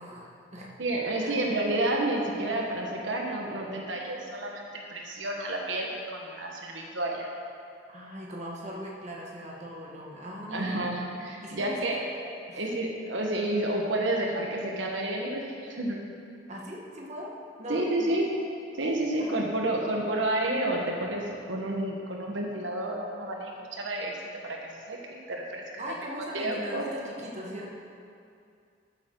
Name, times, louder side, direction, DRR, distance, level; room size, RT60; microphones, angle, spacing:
voice 1, 0.0-0.7 1.2-1.3 7.9-10.8 11.4-12.0 12.5-12.7 16.5-17.3 17.6-18.1 19.2-19.7 25.8-27.7, equal, 40° right, -2 dB, 1.4 m, -40 dB
voice 2, 0.8-7.3 10.5-12.0 12.5-16.0 17.7-18.3 18.7-24.2 24.5-24.6 24.9-25.6 26.3-26.8, right 1 dB, 80° right, 0 dB, 1.4 m, -30 dB
12.5 x 8.6 x 3.9 m, 2.4 s
head